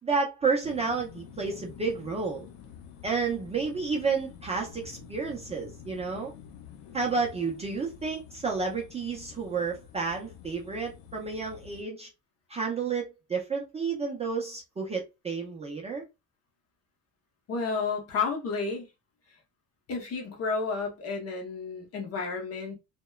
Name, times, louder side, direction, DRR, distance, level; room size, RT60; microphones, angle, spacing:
voice 1, 0.0-2.5 3.0-6.3 6.9-12.1 12.5-16.0, right 4 dB, 20° right, 0.5 m, -31 dB
sound 1, 0.6-11.8, left 7 dB, 90° left, 0.6 m, -49 dB
voice 2, 17.5-18.9 19.9-22.8, left 4 dB, 45° left, 0.9 m, -31 dB
2.9 x 2.2 x 2.2 m
cardioid pair, 140°, 35 cm